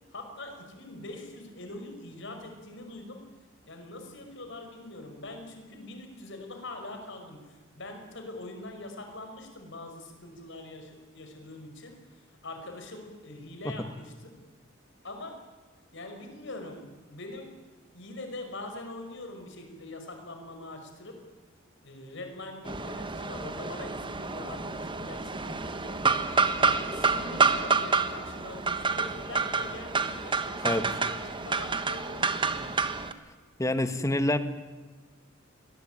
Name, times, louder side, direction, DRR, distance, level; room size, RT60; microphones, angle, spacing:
voice 1, 0.1-3.2 3.7-14.3 15.0-15.4 15.9-16.8 17.1-17.5 17.9-21.2 21.8-26.0 26.5-32.7, left 2 dB, 65° left, 5 dB, 5.6 m, -43 dB
sound 1, 22.7-33.1, right 4 dB, 25° right, 1.3 m, -28 dB
voice 2, 33.6-34.4, left 1 dB, 15° left, 10 dB, 1.5 m, -26 dB
22.5 x 20.0 x 9.3 m, 1.3 s
head